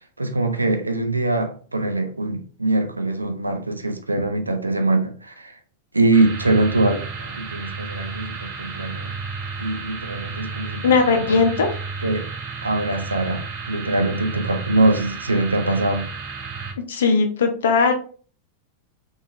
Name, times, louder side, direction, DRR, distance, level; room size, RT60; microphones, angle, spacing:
voice 1, 0.2-5.5 5.9-9.1 9.6-10.8 11.1-11.4 12.0-12.3 12.6-16.1, right 2 dB, 80° right, 0.4 m, -23 dB
sound 1, 6.1-16.7, right 4 dB, 45° right, 0.7 m, -32 dB
voice 2, 10.8-11.7 16.9-17.9, left 4 dB, 65° left, 0.6 m, -18 dB
3.5 x 2.6 x 2.3 m
figure-of-eight pair, 90°, 0 cm